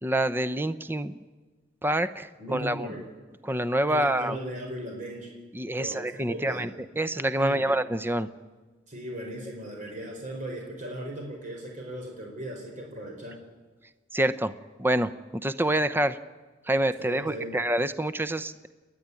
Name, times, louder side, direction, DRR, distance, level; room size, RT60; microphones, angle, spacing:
voice 1, 0.0-1.2 1.8-2.9 3.4-4.4 5.5-8.3 14.1-14.5 14.8-16.2 16.7-18.7, right 1 dB, 10° right, 12 dB, 0.7 m, -27 dB
voice 2, 2.4-3.0 3.9-5.3 5.8-6.7 7.4-7.6 8.9-13.4 17.0-17.6, right 1 dB, 45° right, 0 dB, 4.6 m, -37 dB
29.5 x 10.5 x 9.7 m, 1.3 s
head